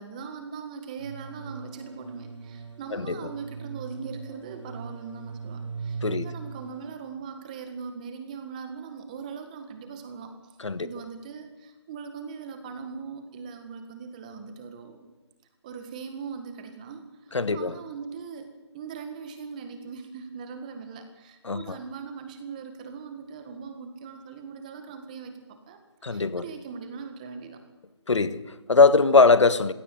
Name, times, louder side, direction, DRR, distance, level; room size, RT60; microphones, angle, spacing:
voice 1, 0.0-10.3 10.8-15.1 15.6-27.6, right 5 dB, 15° right, 1.7 m, -40 dB
sound 1, 1.0-7.0, right 4 dB, 90° right, 3.0 m, -39 dB
voice 2, 17.3-17.7 21.4-21.6 26.0-26.4 28.1-29.7, left 4 dB, 85° left, 1.4 m, -21 dB
20.0 x 16.5 x 9.1 m
hypercardioid pair, 175°, 15 cm